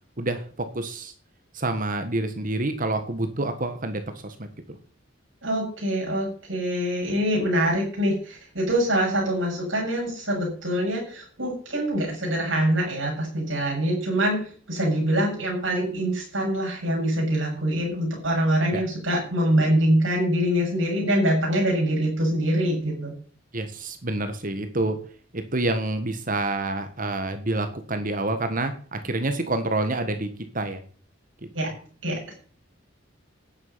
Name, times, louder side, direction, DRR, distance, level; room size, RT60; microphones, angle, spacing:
voice 1, 0.2-1.1 1.5-4.3 18.7-18.8 23.5-25.0 25.3-30.3 30.5-30.8 31.6-31.7, right 2 dB, 45° right, 8 dB, 1.5 m, -27 dB
voice 2, 5.4-23.1 31.5-31.7 32.0-32.3, equal, 80° right, -2 dB, 7.2 m, -24 dB
12.0 x 10.0 x 5.8 m, 0.44 s
head